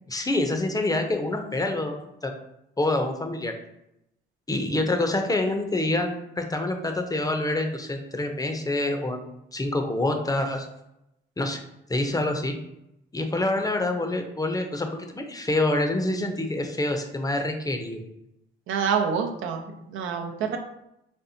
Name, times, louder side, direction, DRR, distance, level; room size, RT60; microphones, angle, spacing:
voice 1, 0.1-2.3 2.8-3.5 4.5-10.7 11.4-11.6 11.9-12.5 13.1-18.1, left 2 dB, 20° left, 4 dB, 0.6 m, -26 dB
voice 2, 18.7-20.6, right 6 dB, 85° right, 3 dB, 0.6 m, -27 dB
4.3 x 3.2 x 2.7 m, 0.82 s
cardioid pair, 90°, 20 cm